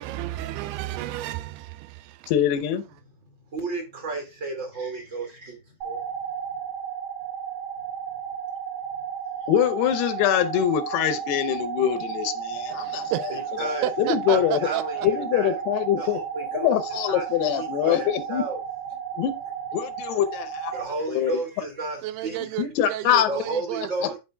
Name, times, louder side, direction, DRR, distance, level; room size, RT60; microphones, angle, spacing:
voice 1, 0.0-2.3 12.7-13.4 13.8-15.1 22.0-24.1, right 13 dB, 85° right, 2.6 m, -32 dB
voice 2, 2.3-2.8 9.5-13.1 14.0-14.7 15.0-16.2 16.5-18.4 19.2-19.3 19.7-20.7 21.1-21.4 22.6-23.3, left 10 dB, 85° left, 2.8 m, -24 dB
voice 3, 3.5-6.0 9.4-9.5 12.7-12.8 13.3-15.5 16.0-16.8 17.1-18.6 20.7-22.6 23.3-24.2, right 3 dB, 35° right, 2.0 m, -33 dB
sound 1, 5.8-20.8, right 7 dB, 55° right, 1.9 m, -33 dB
13.0 x 4.4 x 2.2 m
omnidirectional pair, 4.6 m